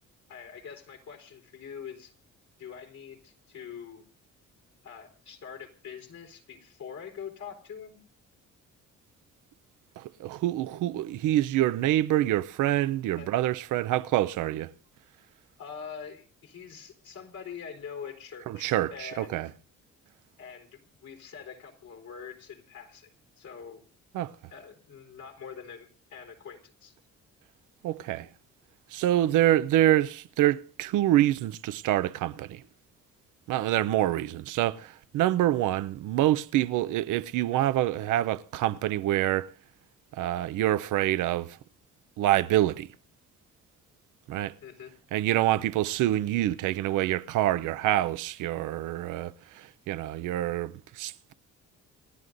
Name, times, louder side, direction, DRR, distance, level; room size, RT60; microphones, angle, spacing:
voice 1, 0.3-2.1 2.6-4.0 4.8-8.0 13.1-13.3 15.6-19.4 20.4-23.1 23.4-23.8 24.5-26.9 44.6-44.9, left 7 dB, 70° left, 4.0 m, -44 dB
voice 2, 10.0-14.7 18.5-19.5 24.1-24.3 27.8-28.3 28.9-32.6 33.5-39.5 40.2-41.6 42.2-42.9 44.3-44.5 45.1-51.3, right 14 dB, 90° right, 0.6 m, -26 dB
28.5 x 11.0 x 2.6 m
cardioid pair, 90°, 30 cm